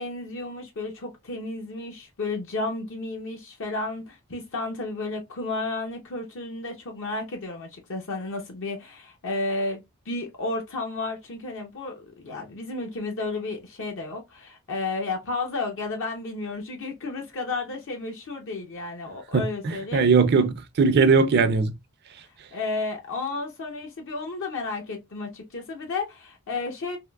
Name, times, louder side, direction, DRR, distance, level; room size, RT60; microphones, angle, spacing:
voice 1, 0.0-20.0 22.3-27.0, left 3 dB, 65° left, 0.7 m, -32 dB
voice 2, 19.3-21.7, right 4 dB, 50° right, 0.5 m, -20 dB
3.5 x 2.5 x 2.2 m
head